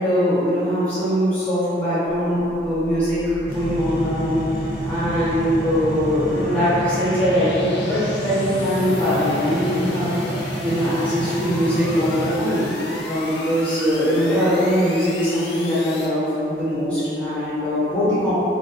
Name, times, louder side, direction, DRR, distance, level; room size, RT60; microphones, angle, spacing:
voice 1, 0.0-4.4 4.8-10.1 10.6-12.7 13.0-18.3, equal, 10° left, -14 dB, 1.1 m, -21 dB
sound 1, 2.2-16.1, left 1 dB, 75° left, 0.4 m, -35 dB
sound 2, 3.5-12.3, equal, 55° right, 0.7 m, -29 dB
3.7 x 2.3 x 2.6 m, 2.9 s
head